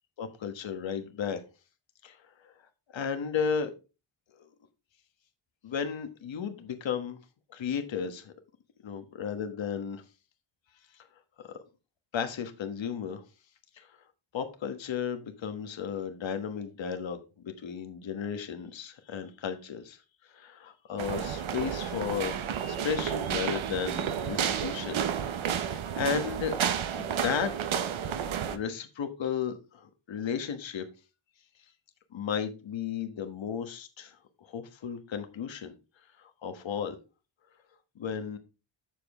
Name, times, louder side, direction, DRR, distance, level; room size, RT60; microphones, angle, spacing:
voice 1, 0.2-1.4 2.0-2.2 2.4-2.5 2.9-3.7 5.6-7.2 7.5-8.3 8.8-10.0 10.9-11.1 11.4-11.6 12.1-13.2 13.8-13.9 14.3-17.2 17.4-20.0 20.3-25.0 25.5-26.6 26.9-27.5 28.4-30.8 32.1-35.7 36.2-37.0 37.9-38.4, left 7 dB, 60° left, 1.4 m, -34 dB
sound 1, 21.0-28.6, right 8 dB, 70° right, 1.0 m, -31 dB
7.6 x 6.8 x 3.6 m
wide cardioid pair, 135°, 50 cm